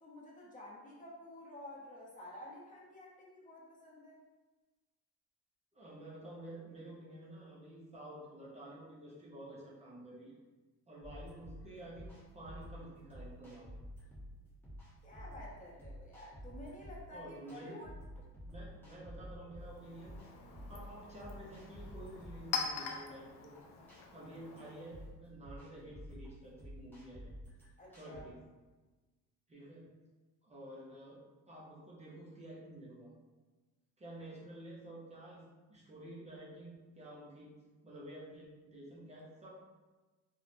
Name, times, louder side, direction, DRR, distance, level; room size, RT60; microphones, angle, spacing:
voice 1, 0.0-4.2 15.0-17.9 27.8-28.3, left 1 dB, 25° left, -4 dB, 0.6 m, -51 dB
voice 2, 5.7-10.3 10.9-13.7 17.1-17.8 18.4-20.2 20.7-23.6 24.1-27.3 27.9-28.4 29.5-29.9 30.4-33.1 34.0-37.5 37.8-39.5, right 1 dB, 20° right, -6 dB, 0.5 m, -50 dB
sound 1, 11.0-28.2, equal, 5° left, 0.9 m, -51 dB
Chink clink, 19.6-25.1, left 6 dB, 90° left, 0.5 m, -44 dB
2.9 x 2.0 x 2.5 m, 1.3 s
cardioid pair, 115°, 32 cm